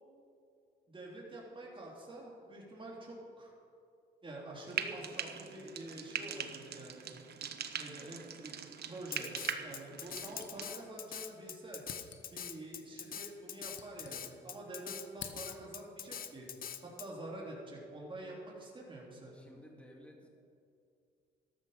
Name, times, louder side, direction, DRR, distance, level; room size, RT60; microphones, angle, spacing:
voice 1, 0.9-3.5 4.2-7.1 7.8-8.5 8.8-9.3 9.6-11.8 12.3-16.5 16.8-19.3, right 1 dB, 25° right, -3 dB, 3.8 m, -47 dB
Frying (food), 4.7-10.7, right 7 dB, 55° right, 1.0 m, -42 dB
voice 2, 8.0-8.3 19.3-20.3, equal, 5° left, 0 dB, 2.2 m, -56 dB
Drum kit, 9.1-17.1, left 8 dB, 50° left, 0.8 m, -43 dB
sound 1, 10.0-11.1 11.3-11.4 11.8-12.5 13.3-14.6 14.9-15.9, left 7 dB, 70° left, 1.3 m, -51 dB
13.5 x 13.0 x 5.2 m, 2.4 s
cardioid pair, 90°, 20 cm